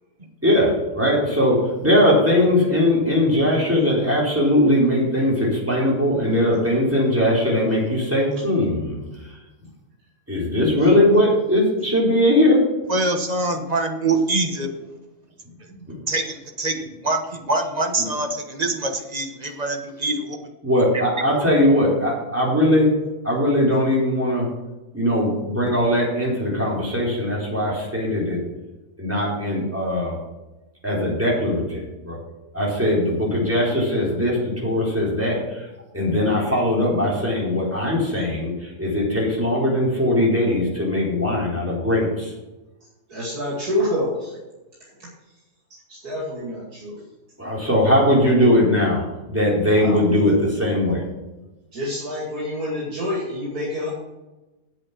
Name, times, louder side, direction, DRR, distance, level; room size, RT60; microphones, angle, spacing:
voice 1, 0.4-1.6 1.8-9.0 10.3-12.6 20.6-22.9 23.2-24.5 24.9-28.4 29.0-30.2 30.8-32.2 32.5-34.4 34.6-35.6 35.9-38.5 38.8-42.3 47.4-49.0 49.3-50.3 50.6-51.0, left 1 dB, 10° right, -5 dB, 4.0 m, -20 dB
voice 2, 6.3-6.6 8.3-8.4 10.8-11.2 15.7-15.8 43.1-44.4 45.0-45.1 45.7-47.0 49.7-50.5 51.3-51.4 51.7-53.9, left 1 dB, 75° right, -4 dB, 3.0 m, -28 dB
voice 3, 12.9-14.7 16.1-20.4 20.8-21.0, right 2 dB, 30° right, 4 dB, 1.2 m, -24 dB
8.9 x 7.9 x 6.0 m, 1.1 s
omnidirectional pair, 1.6 m